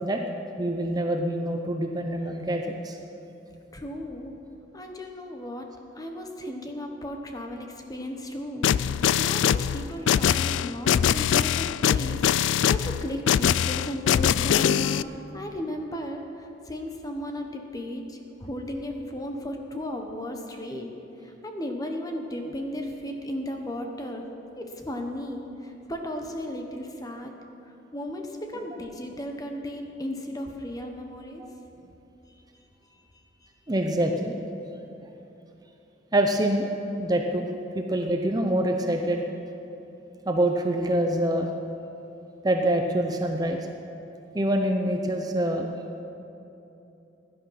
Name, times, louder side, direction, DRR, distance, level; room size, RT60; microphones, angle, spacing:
voice 1, 0.6-3.0 6.4-6.5 31.4-31.5 33.7-34.4 34.7-34.8 36.1-36.7 37.0-37.4 37.7-39.2 40.3-41.5 42.4-43.7 44.3-45.7, right 1 dB, 20° right, 3 dB, 0.7 m, -25 dB
voice 2, 3.7-4.4 4.7-5.7 5.9-20.9 21.2-24.2 24.5-27.3 27.7-31.4 33.1-33.5, left 1 dB, 20° left, 3 dB, 1.2 m, -35 dB
sound 1, 8.6-15.0, left 9 dB, 80° left, 0.3 m, -23 dB
16.0 x 11.0 x 5.8 m, 2.9 s
head